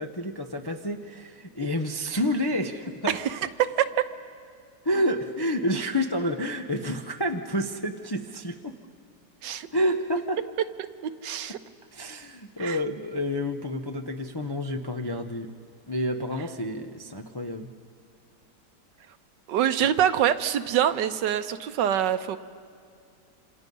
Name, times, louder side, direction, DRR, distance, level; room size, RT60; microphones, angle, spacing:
voice 1, 0.0-3.2 4.8-8.7 9.7-10.4 11.9-15.5 15.9-17.7, equal, 35° left, 4 dB, 0.4 m, -29 dB
voice 2, 3.1-4.0 9.4-9.7 10.6-11.6 12.6-12.8 19.5-22.4, right 10 dB, 85° right, 11 dB, 1.5 m, -25 dB
27.0 x 27.0 x 5.4 m, 2.2 s
omnidirectional pair, 1.9 m